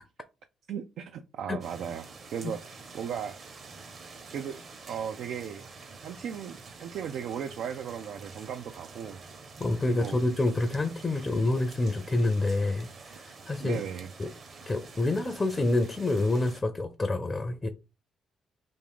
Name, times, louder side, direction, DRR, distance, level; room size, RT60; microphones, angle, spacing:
voice 1, 0.7-2.0 2.3-3.4 4.3-4.6 4.9-5.6 6.0-9.2 9.8-10.2 13.6-14.1, right 8 dB, 75° right, 0.3 m, -36 dB
sound 1, 1.6-16.6, right 4 dB, 50° right, 0.8 m, -48 dB
voice 2, 9.6-12.9 13.1-13.8 14.2-14.3 14.7-17.7, left 2 dB, 25° left, 0.5 m, -27 dB
3.5 x 2.4 x 3.6 m
cardioid pair, 90°, 0 cm